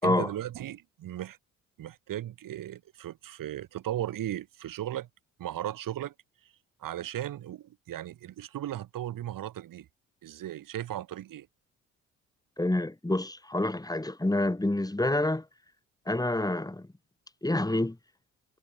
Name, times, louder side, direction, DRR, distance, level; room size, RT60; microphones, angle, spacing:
voice 1, 0.0-1.4 1.8-5.1 5.4-6.1 6.8-9.9 10.2-11.5, right 12 dB, 60° right, 1.8 m, -36 dB
voice 2, 12.6-15.5 16.1-16.9 17.4-18.0, left 1 dB, 10° left, 4.3 m, -27 dB
hypercardioid pair, 55°, 38 cm